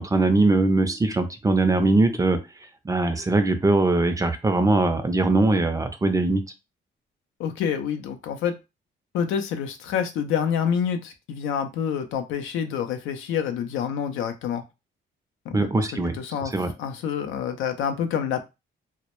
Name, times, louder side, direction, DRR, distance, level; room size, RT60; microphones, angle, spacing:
voice 1, 0.0-2.4 2.8-6.4 15.5-16.2 16.5-16.7, right 2 dB, 15° right, 8 dB, 0.4 m, -21 dB
voice 2, 7.4-8.5 9.1-14.6 15.5-15.9 16.1-16.5 16.8-18.4, left 8 dB, 90° left, 7 dB, 0.4 m, -27 dB
2.1 x 2.0 x 2.9 m, 0.26 s
cardioid pair, 90°, 20 cm